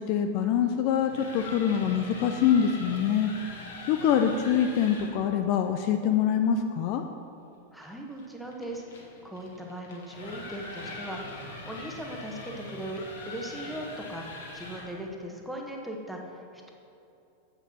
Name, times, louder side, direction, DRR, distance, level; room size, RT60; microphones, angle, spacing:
voice 1, 0.0-7.0, left 8 dB, 45° left, 6 dB, 0.5 m, -25 dB
sound 1, 1.0-5.2 7.8-15.0, left 2 dB, 60° left, 1.5 m, -42 dB
voice 2, 7.7-8.8 9.2-14.3 14.5-16.7, right 1 dB, ahead, 0 dB, 1.2 m, -39 dB
7.9 x 6.7 x 6.1 m, 2.8 s
figure-of-eight pair, 90°, 0 cm